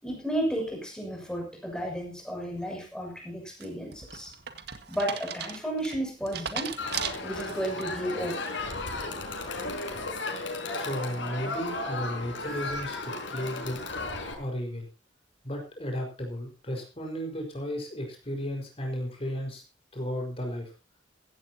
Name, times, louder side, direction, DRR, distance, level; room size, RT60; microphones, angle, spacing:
voice 1, 0.0-4.3 4.9-6.7 7.2-8.4, right 1 dB, 5° left, 1 dB, 6.4 m, -33 dB
sound 1, 3.6-7.8 8.3-8.7, right 7 dB, 55° right, 1.9 m, -37 dB
Crowd, 6.8-14.3, left 2 dB, 70° left, 5.2 m, -35 dB
voice 2, 10.7-13.8 14.4-14.9 15.4-19.6 19.9-20.7, equal, 30° left, 1 dB, 5.0 m, -34 dB
16.5 x 16.0 x 2.9 m, 0.30 s
head